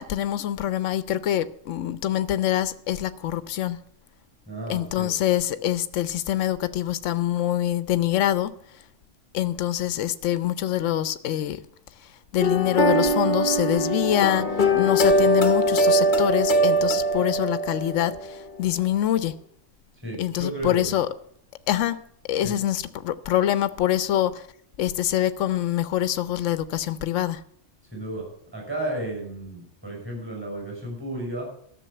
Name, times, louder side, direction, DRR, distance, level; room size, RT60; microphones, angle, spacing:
voice 1, 0.0-3.8 4.7-8.5 9.3-11.6 12.3-14.5 14.8-19.4 20.2-21.1 21.7-22.0 22.3-24.4 24.8-27.4, left 12 dB, 80° left, 1.0 m, -25 dB
voice 2, 4.5-5.1 20.0-21.0 22.4-22.6 27.9-31.5, right 1 dB, 10° right, 5.8 m, -33 dB
sound 1, 12.4-18.3, equal, 45° left, 1.0 m, -22 dB
13.0 x 6.9 x 8.6 m
omnidirectional pair, 1.3 m